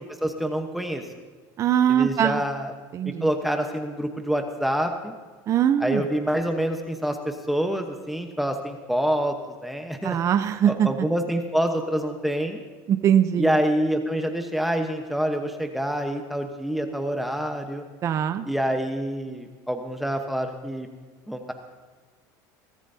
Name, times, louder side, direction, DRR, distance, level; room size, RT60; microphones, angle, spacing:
voice 1, 0.2-1.0 1.9-2.7 3.0-5.1 5.8-10.2 10.7-12.6 13.4-17.8 18.4-20.9 21.3-21.5, equal, ahead, 4 dB, 1.1 m, -26 dB
voice 2, 1.6-2.4 2.9-3.3 5.5-6.0 10.0-10.9 12.9-13.5 18.0-18.5, right 9 dB, 35° right, 9 dB, 0.7 m, -21 dB
22.5 x 14.0 x 2.8 m, 1.5 s
supercardioid pair, 125°, 9 cm